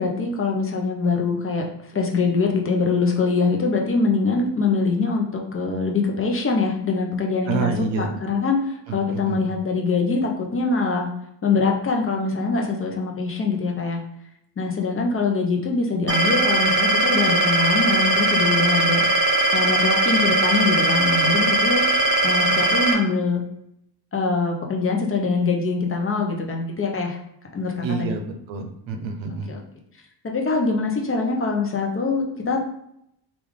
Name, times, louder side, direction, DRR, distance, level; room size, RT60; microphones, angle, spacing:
voice 1, 0.0-1.6 1.9-11.1 11.4-14.0 14.6-19.0 19.5-21.8 22.2-23.4 24.1-27.2 27.5-28.1 29.5-29.6 30.2-32.6, left 4 dB, 30° left, 1 dB, 0.7 m, -23 dB
voice 2, 7.5-8.1 8.9-9.5 27.8-29.5, right 4 dB, 80° right, 6 dB, 0.7 m, -28 dB
sound 1, 16.1-22.9, right 2 dB, 45° right, 0.7 m, -20 dB
3.3 x 2.5 x 3.5 m, 0.74 s
cardioid pair, 100°, 44 cm